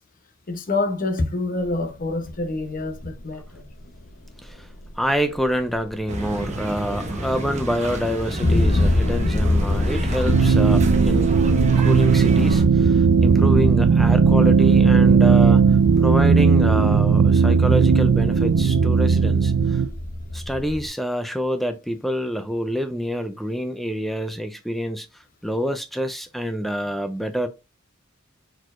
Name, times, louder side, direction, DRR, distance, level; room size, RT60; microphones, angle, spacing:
voice 1, 0.5-3.7 15.9-16.0, left 2 dB, 40° left, 0.8 m, -27 dB
sound 1, 1.6-20.9, left 1 dB, 70° left, 0.9 m, -27 dB
voice 2, 5.0-11.3 11.8-15.6 16.0-19.8 20.3-25.1 25.4-27.5, equal, ahead, 0.4 m, -27 dB
sound 2, 6.1-12.6, right 1 dB, 35° right, 1.0 m, -30 dB
sound 3, 10.3-19.9, right 5 dB, 70° right, 0.4 m, -16 dB
4.5 x 4.1 x 2.5 m
head